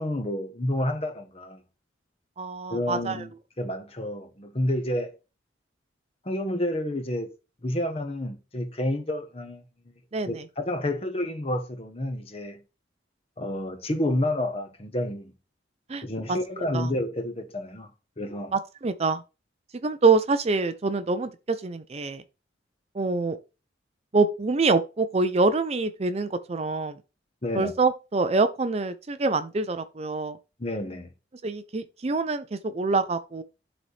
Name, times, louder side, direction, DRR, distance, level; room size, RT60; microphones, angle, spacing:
voice 1, 0.0-1.6 2.7-5.1 6.2-7.3 7.6-9.6 10.3-12.6 13.4-15.3 16.0-17.9 18.2-18.5 27.4-27.7 30.6-31.1, left 1 dB, 30° left, 1.0 m, -29 dB
voice 2, 2.4-3.3 10.1-10.4 15.9-16.0 16.6-16.9 18.5-19.2 19.8-22.2 22.9-23.4 24.1-27.0 27.5-30.4 31.4-33.4, right 3 dB, 35° right, 0.5 m, -25 dB
12.0 x 4.1 x 3.3 m
head